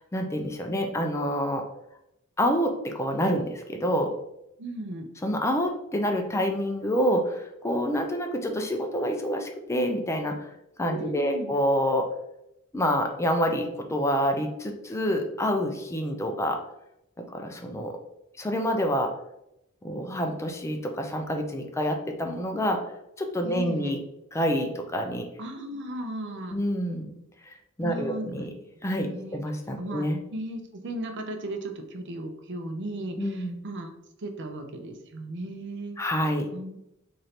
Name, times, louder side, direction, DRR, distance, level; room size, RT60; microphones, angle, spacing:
voice 1, 0.0-1.6 2.4-4.1 5.2-10.4 10.8-12.1 12.7-16.6 17.3-18.0 18.4-19.1 19.8-22.8 23.2-24.0 24.3-25.3 26.5-27.1 27.4-27.5 27.8-28.5 28.8-30.2 33.2-33.5 36.0-36.5, equal, 15° left, 3 dB, 0.4 m, -27 dB
voice 2, 4.6-5.1 10.9-11.5 23.4-24.0 25.4-26.6 27.8-28.3 29.0-29.4 29.8-33.9 34.2-36.0 36.5-36.8, right 1 dB, 55° right, 5 dB, 0.6 m, -36 dB
3.1 x 2.6 x 4.2 m, 0.83 s
head